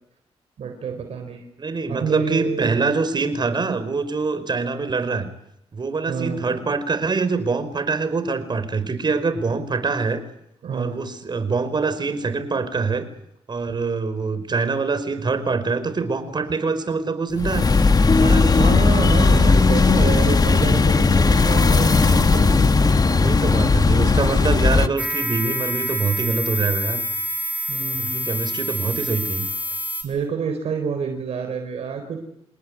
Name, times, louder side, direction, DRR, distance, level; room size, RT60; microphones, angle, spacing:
voice 1, 0.6-1.5 1.9-2.8 6.1-6.4 10.6-11.0 18.5-22.8 27.7-28.3 30.0-32.2, right 6 dB, 70° right, 6 dB, 4.1 m, -28 dB
voice 2, 1.6-5.3 5.7-10.2 10.7-13.0 13.5-17.7 18.1-18.6 21.5-21.8 23.1-27.0 28.0-29.4, right 4 dB, 45° right, 12 dB, 4.9 m, -24 dB
sound 1, 17.4-24.9, left 4 dB, 35° left, 1.8 m, -16 dB
sound 2, 25.0-30.0, equal, 15° right, 5.8 m, -27 dB
28.5 x 19.0 x 9.5 m, 0.78 s
cardioid pair, 65°, 11 cm